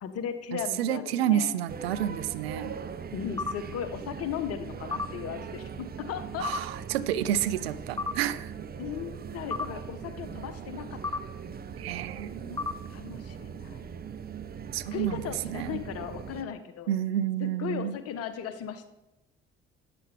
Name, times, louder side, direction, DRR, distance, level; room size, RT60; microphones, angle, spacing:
voice 1, 0.0-1.6 3.1-6.5 8.8-11.2 12.5-12.6 12.9-13.9 14.9-16.9 17.4-18.9, left 8 dB, 50° left, 10 dB, 1.1 m, -37 dB
voice 2, 0.5-2.8 6.4-8.5 11.8-12.6 14.7-15.8 16.9-17.9, right 11 dB, 75° right, 14 dB, 0.5 m, -30 dB
sound 1, 1.7-16.4, right 7 dB, 30° right, 0.8 m, -41 dB
sound 2, 3.4-3.6 4.9-5.1 6.4-6.6 8.0-8.2 9.5-9.7 11.0-11.2 12.6-12.8, left 4 dB, 15° left, 0.6 m, -31 dB
12.5 x 9.1 x 3.5 m, 0.96 s
figure-of-eight pair, 50°, 31 cm